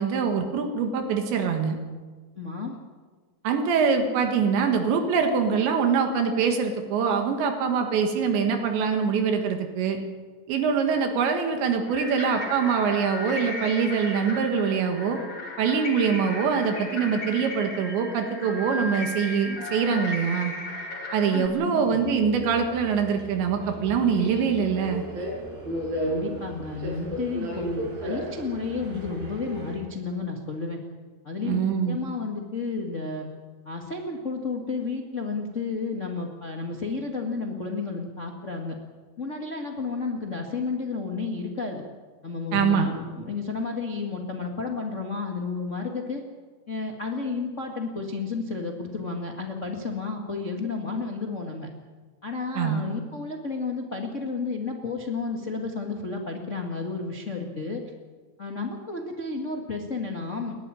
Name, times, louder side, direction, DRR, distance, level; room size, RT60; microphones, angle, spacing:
voice 1, 0.0-1.8 3.4-10.0 10.5-15.2 15.6-20.5 21.1-25.1 31.4-32.0 42.5-42.9 52.6-52.8, right 6 dB, 80° right, 4 dB, 4.0 m, -24 dB
voice 2, 2.3-2.8 21.3-22.0 26.0-30.8 31.2-33.3 33.6-38.7 39.2-41.8 42.2-46.2 46.7-51.7 52.2-57.8 58.4-60.6, left 4 dB, 70° left, 1 dB, 0.7 m, -32 dB
sound 1, 11.9-21.5, left 2 dB, 35° left, 2.6 m, -35 dB
Subway metro underground, 21.9-29.8, right 1 dB, 55° right, 6.7 m, -34 dB
29.5 x 12.0 x 10.0 m, 1.4 s
omnidirectional pair, 5.1 m